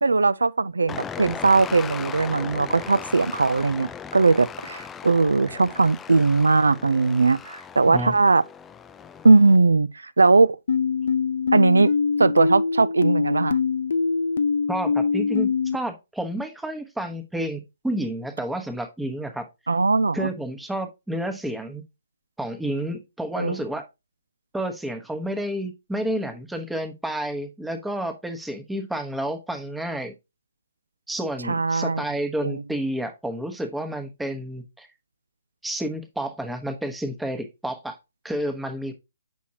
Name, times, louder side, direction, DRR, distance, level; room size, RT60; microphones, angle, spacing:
voice 1, 0.0-8.4 9.2-10.6 11.5-11.9 12.2-13.6 19.7-20.3 23.4-23.6 31.5-32.0 32.4-32.6, right 3 dB, 75° right, 0.4 m, -19 dB
sound 1, 0.9-9.6, left 7 dB, 10° left, 0.4 m, -38 dB
sound 2, 10.7-15.8, left 5 dB, 60° left, 0.7 m, -23 dB
voice 2, 14.7-19.5 20.1-21.8 22.4-23.8 24.5-30.1 31.1-34.9 35.6-38.0 38.2-38.9, right 1 dB, 5° right, 1.0 m, -30 dB
8.2 x 6.2 x 2.8 m
figure-of-eight pair, 130°, 0 cm